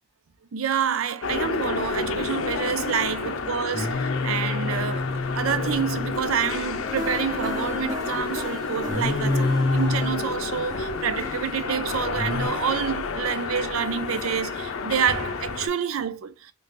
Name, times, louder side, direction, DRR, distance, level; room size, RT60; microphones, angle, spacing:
voice 1, 0.5-16.5, right 7 dB, 90° right, 0.5 m, -28 dB
sound 1, 1.2-15.7, left 4 dB, 80° left, 0.5 m, -30 dB
Singing, 3.7-6.2 6.8-8.0 8.9-10.2 12.2-12.5, left 2 dB, 25° left, 0.8 m, -27 dB
sound 2, 7.0-13.7, equal, 15° right, 0.8 m, -39 dB
3.6 x 2.4 x 3.0 m
head